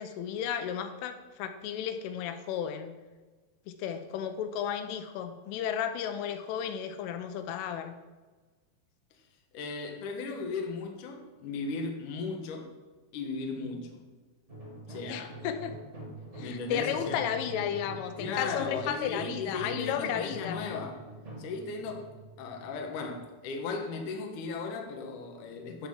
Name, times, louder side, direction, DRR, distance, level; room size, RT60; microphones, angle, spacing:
voice 1, 0.0-2.9 3.7-8.0 15.1-15.7 16.3-20.6, left 9 dB, 85° left, 8 dB, 3.2 m, -33 dB
voice 2, 9.5-12.7 13.1-14.0 14.9-15.3 16.4-17.2 18.2-21.0 21.4-22.1 22.4-25.9, left 4 dB, 65° left, 2 dB, 2.2 m, -36 dB
sound 1, 14.5-23.3, right 1 dB, 30° right, 1.3 m, -45 dB
13.0 x 5.8 x 7.2 m, 1.3 s
omnidirectional pair, 5.7 m